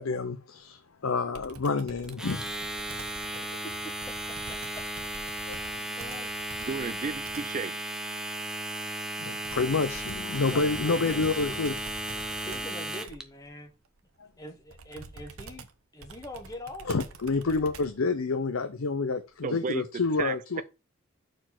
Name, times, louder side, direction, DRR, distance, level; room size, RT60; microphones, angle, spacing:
voice 1, 0.0-2.8 3.3-3.4 5.5-5.9 9.2-11.7 12.1-12.4 14.2-14.3 16.8-20.6, left 4 dB, 80° left, 0.6 m, -29 dB
Computer keyboard, 1.3-7.6 9.4-18.1, right 3 dB, 90° right, 0.9 m, -47 dB
Domestic sounds home sounds, 2.1-13.2, right 1 dB, 5° right, 0.7 m, -35 dB
voice 2, 4.1-4.8 6.0-6.3 10.5-11.2 11.5-11.6 12.5-13.7 14.4-15.7 15.9-16.9, left 1 dB, 15° left, 1.3 m, -43 dB
voice 3, 6.6-7.8 19.4-19.8 20.2-20.6, right 5 dB, 35° right, 0.4 m, -33 dB
6.3 x 4.6 x 5.9 m
head